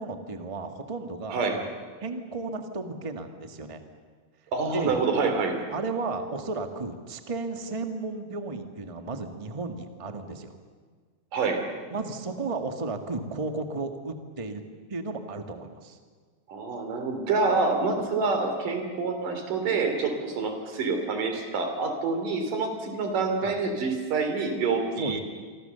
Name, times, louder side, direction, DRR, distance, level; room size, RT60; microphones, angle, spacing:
voice 1, 0.0-1.7 2.0-3.8 4.7-5.0 5.7-10.6 11.9-14.6 14.9-16.0 23.4-23.6 25.0-25.2, right 3 dB, 20° right, 6 dB, 0.9 m, -34 dB
voice 2, 4.5-5.6 11.3-11.6 16.5-25.2, right 4 dB, 80° right, 5 dB, 4.7 m, -27 dB
27.5 x 24.0 x 7.0 m, 1.5 s
omnidirectional pair, 3.7 m